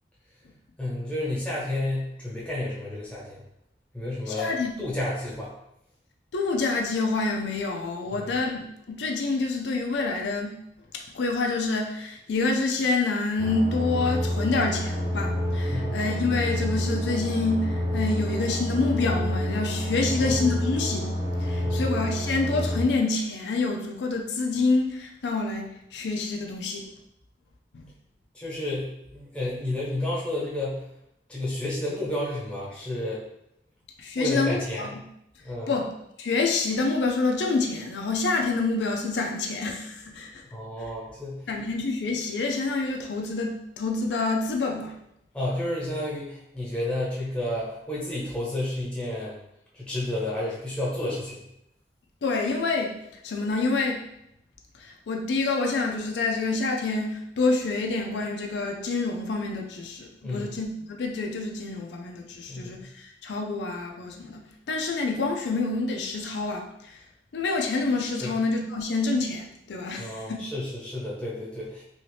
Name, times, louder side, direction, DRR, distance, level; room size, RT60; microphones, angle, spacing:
voice 1, 0.8-3.4 3.9-4.5 4.8-5.5 8.1-8.3 15.7-16.0 20.2-20.4 21.6-21.9 28.3-30.8 31.3-33.2 34.1-34.9 35.4-35.7 40.5-41.4 45.3-49.4 49.7-51.4 60.2-60.5 62.5-62.8 68.2-68.4 70.0-71.8, left 1 dB, 5° left, -6 dB, 1.1 m, -31 dB
voice 2, 4.3-4.9 6.3-8.6 8.9-10.5 10.9-21.1 21.4-26.9 27.7-27.9 34.0-34.9 35.7-35.9 36.2-40.4 41.5-44.9 52.2-52.9 53.2-54.0 54.8-60.7 61.0-64.4 64.7-67.0 67.3-70.4, left 3 dB, 85° left, 2 dB, 0.4 m, -27 dB
sound 1, 13.4-22.8, equal, 20° right, 0.5 m, -28 dB
3.1 x 2.7 x 3.2 m, 0.79 s
head